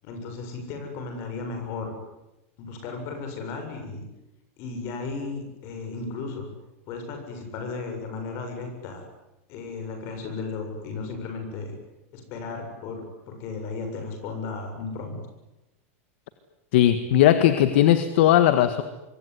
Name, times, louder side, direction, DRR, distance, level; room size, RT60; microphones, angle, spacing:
voice 1, 0.0-1.9 2.6-4.0 4.6-6.5 6.9-9.1 9.5-11.7 12.1-15.2, left 4 dB, 35° left, 4 dB, 7.4 m, -35 dB
voice 2, 16.7-18.8, left 12 dB, 50° left, 10 dB, 1.7 m, -18 dB
25.5 x 24.0 x 9.8 m, 0.97 s
supercardioid pair, 180°, 8 cm